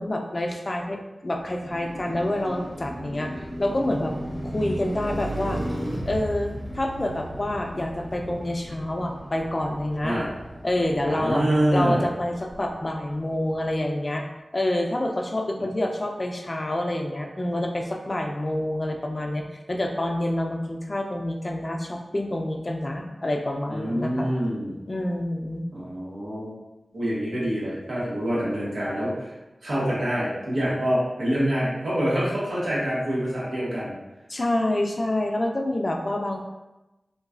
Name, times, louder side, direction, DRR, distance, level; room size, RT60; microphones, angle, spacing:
voice 1, 0.0-4.1 4.4-5.6 6.1-10.2 10.6-11.4 11.7-14.2 14.5-19.4 19.7-24.3 24.9-25.6 34.3-36.5, left 1 dB, 45° left, 2 dB, 0.4 m, -27 dB
Car passing by, 1.4-13.6, equal, 35° right, 1.4 m, -36 dB
voice 2, 11.1-12.1 23.7-24.8 25.7-26.5 26.9-29.3 29.6-33.9, equal, 90° right, -8 dB, 1.1 m, -26 dB
3.9 x 2.2 x 2.4 m, 1.0 s
cardioid pair, 40°, 0 cm